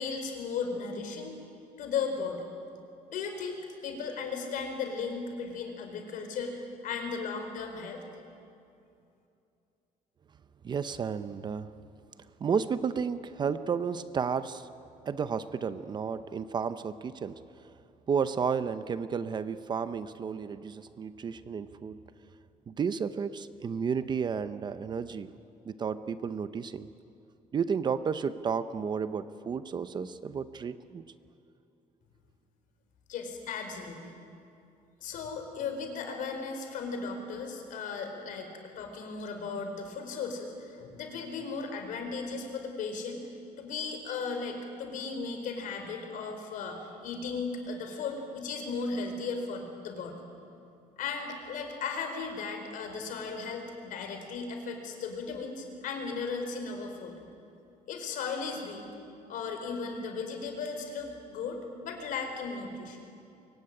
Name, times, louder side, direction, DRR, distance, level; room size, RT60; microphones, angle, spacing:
voice 1, 0.0-1.4 1.8-2.5 3.1-8.0 33.1-34.1 35.0-43.2 43.6-50.2 51.0-57.1 57.9-58.8 59.3-63.1, left 5 dB, 65° left, 5 dB, 4.5 m, -36 dB
voice 2, 10.6-11.7 12.4-14.7 15.1-17.7 18.1-22.0 22.7-25.3 25.6-26.9 27.5-31.0, right 6 dB, 30° right, 12 dB, 0.7 m, -32 dB
24.0 x 23.0 x 9.8 m, 2.6 s
cardioid pair, 170°, 15 cm